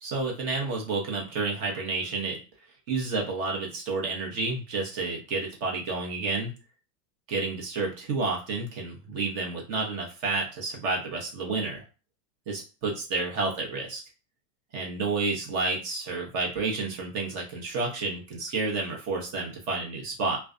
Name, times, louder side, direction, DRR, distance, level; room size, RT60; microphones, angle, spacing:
voice 1, 0.0-2.4 2.9-6.5 7.3-11.8 12.5-14.0 14.7-20.4, right 3 dB, 40° right, 0 dB, 0.8 m, -30 dB
2.4 x 2.1 x 2.4 m, 0.32 s
supercardioid pair, 140°, 39 cm